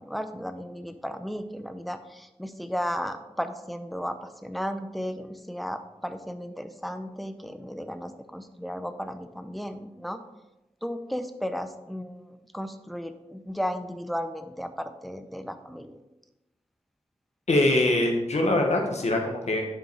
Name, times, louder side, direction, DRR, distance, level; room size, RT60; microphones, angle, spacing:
voice 1, 0.0-10.2 10.8-16.0, equal, ahead, 9 dB, 0.7 m, -34 dB
voice 2, 17.5-19.7, left 1 dB, 85° left, 1 dB, 1.2 m, -23 dB
8.0 x 5.1 x 4.6 m, 0.99 s
wide cardioid pair, 65°, 11 cm